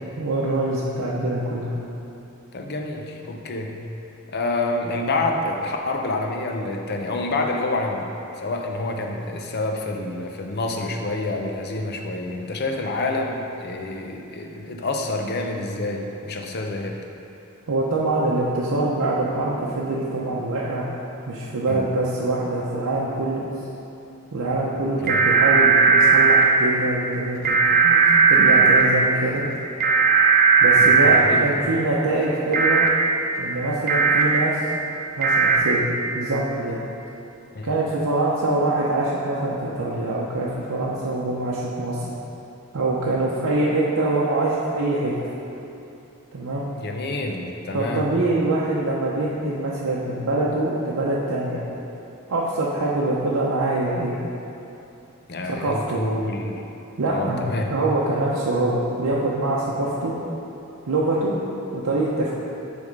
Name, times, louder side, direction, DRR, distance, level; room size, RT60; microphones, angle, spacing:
voice 1, 0.2-1.7 17.7-20.9 21.3-23.5 24.3-27.6 27.8-29.4 30.6-32.8 33.4-34.6 35.2-35.9 36.1-36.8 37.6-42.1 42.7-45.1 46.3-46.6 47.7-51.6 52.3-54.2 55.4-56.0 57.0-57.4 57.7-60.2 60.8-61.3 61.7-62.4, right 2 dB, 85° right, -6 dB, 0.7 m, -24 dB
voice 2, 2.5-3.7 4.3-8.1 8.4-17.0 21.7-21.9 25.0-25.3 30.8-31.6 37.5-37.7 46.7-48.0 55.3-56.6 57.1-57.7, left 2 dB, 45° left, 2 dB, 0.6 m, -28 dB
sound 1, 25.1-26.4 27.4-28.8 29.8-31.2 32.5-32.9 33.9-34.2 35.2-35.6, right 5 dB, 40° right, 0.6 m, -16 dB
8.3 x 3.5 x 5.2 m, 2.9 s
head